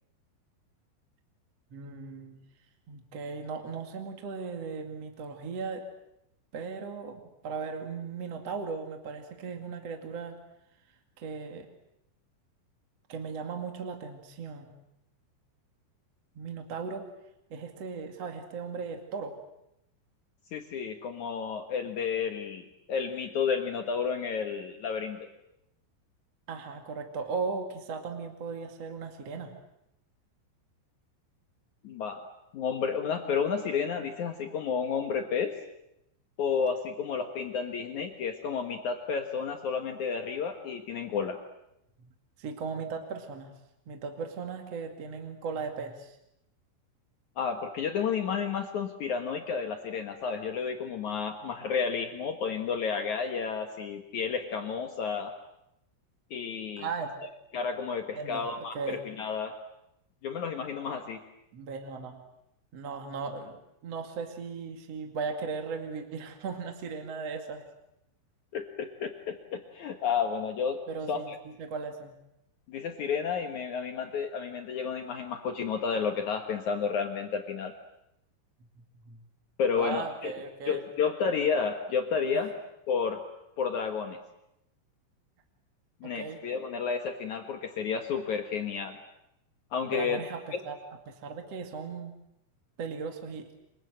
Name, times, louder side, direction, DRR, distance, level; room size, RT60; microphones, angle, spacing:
voice 1, 1.7-2.4 2.9-5.8 6.5-10.4 11.2-11.7 13.1-14.7 16.4-17.1 17.5-19.3 26.5-29.5 42.4-43.6 43.9-46.2 56.8-57.1 58.2-59.0 61.5-62.2 62.7-67.6 70.9-72.2 79.0-79.2 79.8-80.8 82.3-82.4 86.0-86.4 89.9-90.8 91.1-92.1 92.8-93.5, right 5 dB, 45° right, 4 dB, 2.3 m, -37 dB
voice 2, 20.5-25.3 31.8-32.2 32.5-35.5 36.4-41.4 47.4-55.3 56.3-56.9 57.5-59.5 60.2-61.2 68.5-70.8 71.1-71.4 72.7-77.7 79.6-80.3 80.6-82.5 82.9-83.2 83.6-84.2 86.0-89.0 89.7-90.2 90.5-90.6, left 6 dB, 80° left, 5 dB, 1.7 m, -31 dB
29.5 x 25.0 x 7.9 m, 0.83 s
omnidirectional pair, 6.0 m